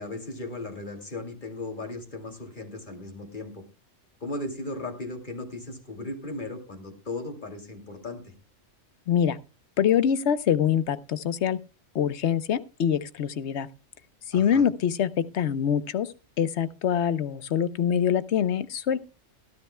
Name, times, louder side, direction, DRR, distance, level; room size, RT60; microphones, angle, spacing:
voice 1, 0.0-3.6 4.2-8.3 14.3-14.6, left 2 dB, 40° left, 4 dB, 2.8 m, -37 dB
voice 2, 9.1-9.4 9.8-11.6 11.9-13.7 14.3-16.1 16.4-19.0, left 8 dB, 65° left, 14 dB, 1.1 m, -24 dB
17.5 x 12.5 x 2.2 m, 0.30 s
omnidirectional pair, 1.3 m